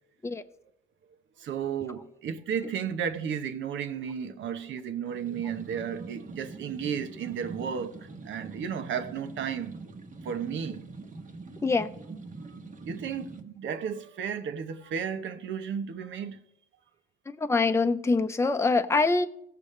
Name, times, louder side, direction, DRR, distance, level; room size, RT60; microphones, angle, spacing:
voice 1, 1.4-9.8 10.2-10.8 12.5-16.4, right 7 dB, 70° right, 1.0 m, -33 dB
sound 1, 5.1-13.4, right 3 dB, 40° right, 1.4 m, -44 dB
voice 2, 17.3-19.3, left 3 dB, 15° left, 0.7 m, -24 dB
17.0 x 6.8 x 3.3 m
cardioid pair, 90°, 20 cm